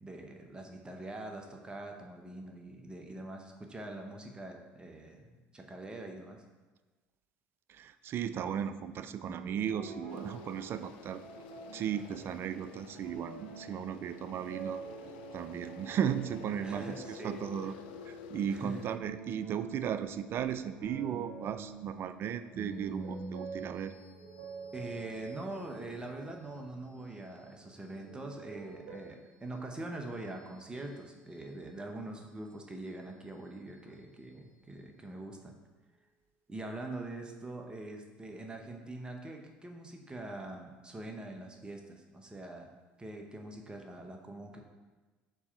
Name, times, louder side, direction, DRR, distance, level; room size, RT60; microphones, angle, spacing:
voice 1, 0.0-6.4 16.6-17.4 17.6-17.7 18.5-18.8 24.7-35.6 36.5-42.7 43.0-44.6, right 2 dB, 15° right, 2 dB, 1.0 m, -43 dB
voice 2, 7.7-11.2 11.7-14.8 15.3-17.7 18.1-24.0, right 9 dB, 50° right, 12 dB, 0.4 m, -36 dB
sound 1, 9.2-18.1 18.6-27.6 27.8-28.9, right 4 dB, 70° right, 1.4 m, -47 dB
sound 2, 10.1-19.0, left 7 dB, 80° left, 0.4 m, -50 dB
sound 3, 22.5-37.3, left 1 dB, 15° left, 1.8 m, -64 dB
4.6 x 4.2 x 5.6 m, 1.3 s
hypercardioid pair, 70°, 5 cm